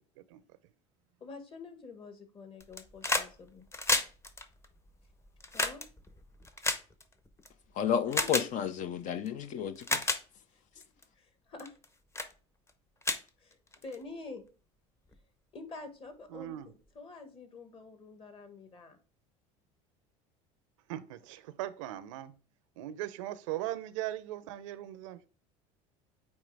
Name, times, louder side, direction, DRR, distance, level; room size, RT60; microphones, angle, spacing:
voice 1, 1.2-3.7 5.5-5.8 9.3-9.4 10.5-10.6 11.1-11.8 13.4-14.4 15.5-19.0, left 3 dB, 35° left, 1.6 m, -47 dB
sound 1, 2.6-3.3 3.6-7.5 8.1-8.5 9.3-9.4 9.8-10.2 10.8-11.0 11.6-11.8 12.1-12.3 12.7-12.8 13.0-14.0 15.1-15.2, left 2 dB, 15° left, 0.8 m, -31 dB
voice 2, 7.8-10.0, left 8 dB, 50° left, 0.6 m, -32 dB
voice 3, 16.3-16.7 20.9-22.3 22.8-25.3, right 14 dB, 85° right, 0.6 m, -39 dB
8.9 x 3.2 x 3.4 m
supercardioid pair, 90°, 16 cm